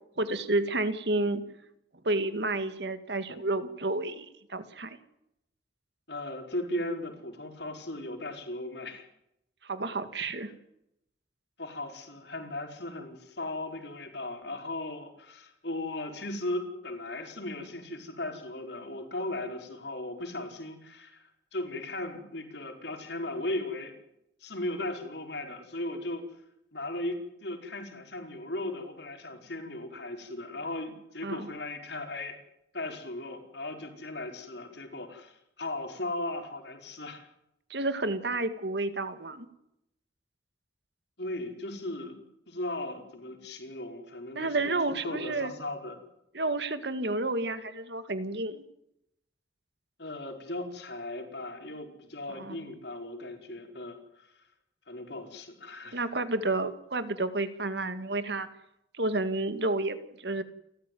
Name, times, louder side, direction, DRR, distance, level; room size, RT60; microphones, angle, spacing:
voice 1, 0.2-1.4 2.0-5.0 9.6-10.5 31.2-31.5 37.7-39.5 44.3-45.5 46.3-48.6 52.3-52.6 55.9-58.5 58.9-60.4, right 2 dB, 70° right, 11 dB, 2.2 m, -30 dB
voice 2, 6.1-9.1 11.6-23.9 24.4-26.2 26.7-32.4 32.7-37.3 41.2-42.2 42.5-44.7 45.0-46.0 50.0-54.5 54.9-56.0, left 1 dB, 70° left, 4 dB, 5.1 m, -37 dB
29.5 x 14.0 x 9.5 m, 0.82 s
head